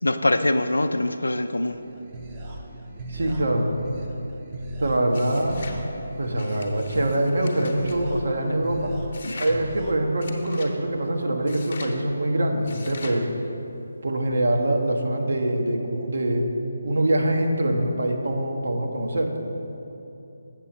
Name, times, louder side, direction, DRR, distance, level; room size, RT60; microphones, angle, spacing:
voice 1, 0.0-1.8 9.2-9.5, left 1 dB, 80° left, 9 dB, 0.3 m, -24 dB
sound 1, 1.7-9.9, right 1 dB, 25° right, 0.8 m, -38 dB
voice 2, 3.1-3.7 4.8-5.7 6.2-8.9 9.4-13.3 14.0-16.5 16.8-19.3, right 1 dB, 65° right, 3 dB, 1.0 m, -24 dB
sound 2, 5.1-5.8 6.4-8.0 9.1-9.6 10.2-10.7 11.5-12.0 12.7-13.2, left 4 dB, 45° left, 0.8 m, -42 dB
7.4 x 7.0 x 4.3 m, 2.9 s
figure-of-eight pair, 150°, 0 cm